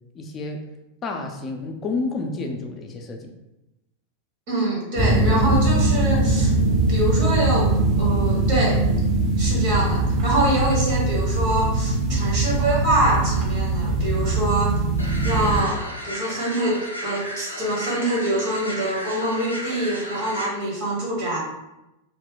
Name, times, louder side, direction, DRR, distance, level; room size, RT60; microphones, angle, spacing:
voice 1, 0.1-0.6 1.0-3.3 12.1-12.3, left 3 dB, 25° left, 3 dB, 0.4 m, -30 dB
voice 2, 4.5-6.5 6.9-8.8 9.4-14.8 15.2-21.4, right 1 dB, 50° right, -4 dB, 1.0 m, -25 dB
sound 1, 5.0-15.6, right 2 dB, 30° right, 0.6 m, -21 dB
sound 2, 15.0-20.5, equal, 85° left, 0.4 m, -34 dB
2.4 x 2.1 x 3.7 m, 0.94 s
figure-of-eight pair, 90°, 0 cm